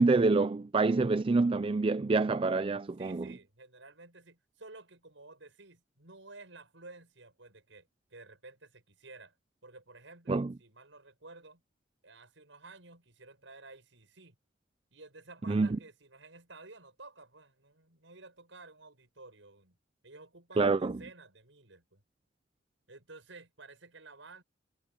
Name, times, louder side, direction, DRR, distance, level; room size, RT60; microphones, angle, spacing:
voice 1, 0.0-3.3 10.3-10.5 15.5-15.7 20.6-21.0, right 3 dB, 30° right, 0.4 m, -26 dB
voice 2, 3.0-9.4 9.6-11.6 12.0-14.3 14.9-19.8 20.0-22.0 22.9-24.4, right 3 dB, 85° right, 6.6 m, -53 dB
head